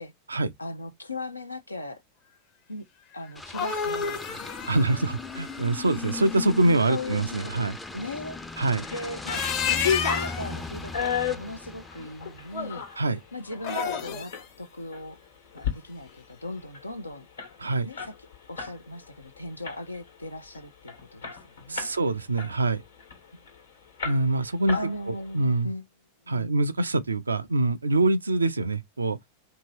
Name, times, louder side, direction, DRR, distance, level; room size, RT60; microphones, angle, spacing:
voice 1, 0.6-2.0 2.7-2.8 3.1-4.8 6.9-7.6 7.9-8.4 8.9-12.9 13.3-15.2 15.5-17.3 17.8-18.1 18.5-21.9 24.7-25.8 26.3-26.6, left 2 dB, 80° left, 0.5 m, -38 dB
sound 1, 3.3-6.3 9.1-10.6 13.5-14.4, left 7 dB, 45° left, 0.7 m, -31 dB
sound 2, 3.4-12.9, left 3 dB, 5° left, 0.4 m, -38 dB
voice 2, 4.7-7.8 8.6-8.9 13.0-13.2 17.6-17.9 21.7-22.8 24.0-24.8 25.3-25.7 26.3-29.2, right 2 dB, 75° right, 0.4 m, -24 dB
sound 3, 8.6-9.1 9.4-13.0 13.5-14.5 14.9-15.1 15.5-15.8 16.1-16.2 16.4-18.8 19.1-19.3 19.6-20.1 20.5-20.6 20.9-22.0 22.4-23.5 24.0-24.4 24.7-25.3, left 7 dB, 65° left, 1.1 m, -32 dB
2.8 x 2.7 x 2.9 m
figure-of-eight pair, 90°, 0 cm